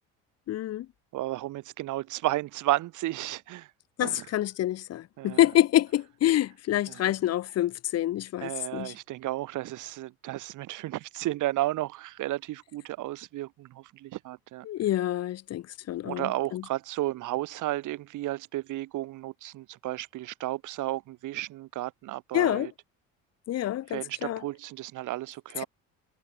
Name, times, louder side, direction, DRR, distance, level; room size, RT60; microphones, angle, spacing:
voice 1, 0.5-0.9 4.0-8.9 14.7-16.6 22.3-22.7 23.5-24.4, left 13 dB, 50° left, 0.9 m, -27 dB
voice 2, 1.1-3.7 4.0-4.3 5.2-5.4 6.9-7.1 8.4-14.7 16.0-22.7 23.9-25.7, right 16 dB, 65° right, 2.8 m, -33 dB
supercardioid pair, 100°, 33 cm